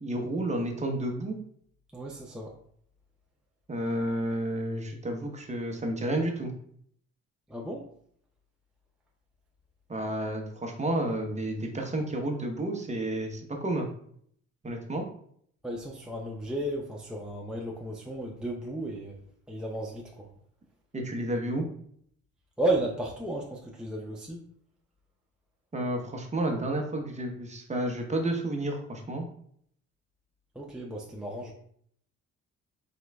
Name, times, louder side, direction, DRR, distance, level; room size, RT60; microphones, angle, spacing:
voice 1, 0.0-1.4 3.7-6.5 9.9-13.9 14.6-15.0 20.9-21.7 25.7-29.3, right 1 dB, 25° right, 2 dB, 0.9 m, -31 dB
voice 2, 1.9-2.5 7.5-7.9 15.6-19.2 19.5-20.3 22.6-24.4 30.5-31.5, right 1 dB, 5° right, -2 dB, 0.6 m, -33 dB
3.8 x 3.0 x 3.4 m, 0.64 s
cardioid pair, 90°, 30 cm